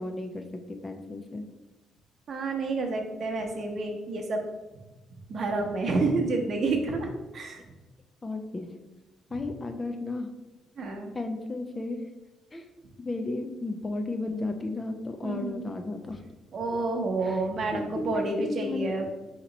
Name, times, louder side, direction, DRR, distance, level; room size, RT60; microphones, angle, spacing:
voice 1, 0.0-1.4 8.2-8.7 9.3-10.3 11.1-12.0 12.5-12.6 13.0-16.2 17.2-17.4 17.7-19.1, left 2 dB, 25° left, 5 dB, 0.5 m, -34 dB
voice 2, 2.3-4.4 5.3-7.6 10.8-11.1 15.2-15.7 16.5-19.1, right 3 dB, 55° right, 2 dB, 0.8 m, -29 dB
4.2 x 2.9 x 3.9 m, 1.1 s
cardioid pair, 90°, 0 cm